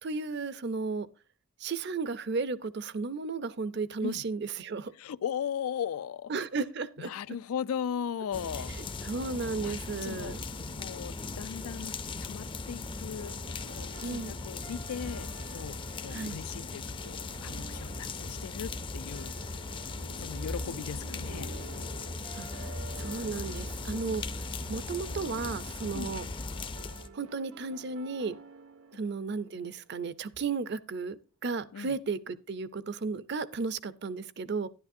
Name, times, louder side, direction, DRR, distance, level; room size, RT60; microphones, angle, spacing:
voice 1, 0.0-1.1 1.6-4.9 6.3-7.1 9.0-10.4 14.0-14.4 16.1-16.4 22.4-22.5 23.0-24.2 24.7-26.3 27.1-28.3 28.9-34.7, right 4 dB, 50° right, 0.6 m, -34 dB
voice 2, 4.9-6.3 7.0-9.1 9.6-10.4 10.7-13.3 13.7-19.6 20.2-21.5 25.9-26.1 31.7-32.0, left 8 dB, 90° left, 0.4 m, -38 dB
sound 1, 8.3-27.1, left 3 dB, 25° left, 0.5 m, -38 dB
sound 2, 13.2-30.1, right 3 dB, 90° right, 1.1 m, -51 dB
11.0 x 10.5 x 2.6 m
head